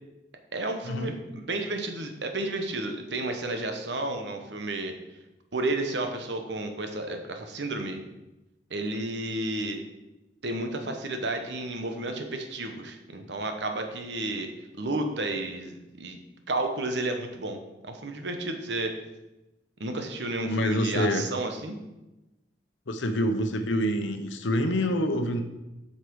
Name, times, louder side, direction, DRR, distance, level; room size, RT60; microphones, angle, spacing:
voice 1, 0.5-4.9 5.5-8.0 8.7-9.8 10.4-14.5 14.8-16.2 16.5-18.9 19.8-21.8, right 2 dB, 70° right, 5 dB, 1.1 m, -32 dB
voice 2, 20.4-21.2 22.9-25.4, equal, 90° left, 7 dB, 0.9 m, -26 dB
8.2 x 5.7 x 4.7 m, 0.99 s
head